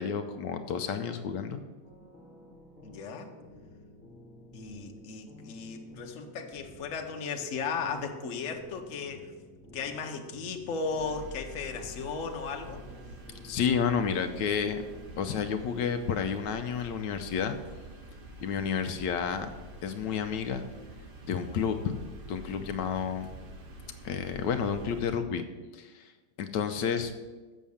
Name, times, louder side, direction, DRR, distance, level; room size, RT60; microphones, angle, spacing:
voice 1, 0.0-1.6 13.4-14.8 15.2-17.6 18.4-19.5 19.8-20.6 21.3-21.9 22.3-23.3 24.0-25.4 25.7-26.1 26.4-27.1, left 7 dB, 80° left, 8 dB, 1.3 m, -30 dB
sound 1, 1.8-16.6, left 1 dB, 30° left, 1.4 m, -52 dB
voice 2, 2.8-3.3 4.5-9.3 9.7-12.8, left 5 dB, 50° left, 4 dB, 1.1 m, -36 dB
sound 2, 11.0-25.1, equal, 45° right, 0.7 m, -47 dB
7.3 x 6.4 x 7.0 m, 1.3 s
omnidirectional pair, 1.9 m